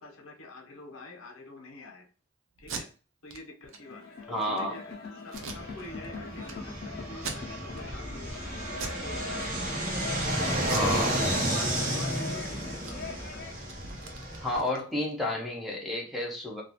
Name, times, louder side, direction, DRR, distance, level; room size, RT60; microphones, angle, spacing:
voice 1, 0.0-2.0 2.6-2.9 3.2-4.0 4.4-8.6 8.8-10.0 10.4-13.4, left 2 dB, 85° left, 3 dB, 0.7 m, -46 dB
Packing tape duct tape, 2.6-2.8 3.3-3.4 3.7-3.8 4.2-4.6 5.3-6.1 6.4-6.5 7.1-7.8 8.2-8.4 8.7-9.0 9.4-10.0 10.6-11.7 12.0-12.2 12.5-15.1, right 4 dB, 70° right, 0.5 m, -41 dB
sound 1, 3.7-13.6, left 4 dB, 50° left, 0.5 m, -42 dB
voice 2, 4.3-4.8 10.7-11.1 14.4-16.6, left 1 dB, ahead, -1 dB, 0.5 m, -31 dB
Fixed-wing aircraft airplane, 5.3-14.6, right 1 dB, 40° right, 0.8 m, -32 dB
2.3 x 2.3 x 2.8 m, 0.36 s
head